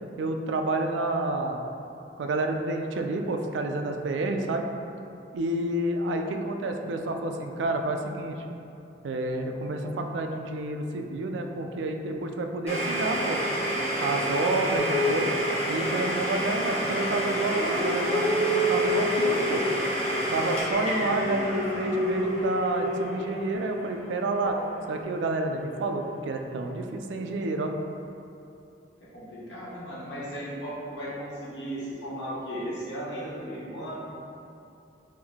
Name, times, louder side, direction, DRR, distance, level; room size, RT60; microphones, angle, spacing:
voice 1, 0.2-1.6 2.2-4.7 5.3-8.4 9.0-13.4 14.0-15.3 15.7-19.6 20.3-24.6 24.9-27.7, right 2 dB, 80° right, 4 dB, 0.3 m, -29 dB
Domestic sounds home sounds, 12.7-24.3, right 1 dB, 35° left, 1.0 m, -30 dB
sound 1, 14.8-16.4 17.2-19.9 20.8-23.3 24.4-25.0, equal, 10° left, 0.7 m, -29 dB
voice 2, 29.0-33.9, equal, 75° left, -8 dB, 1.0 m, -36 dB
3.5 x 2.6 x 3.5 m, 2.7 s
head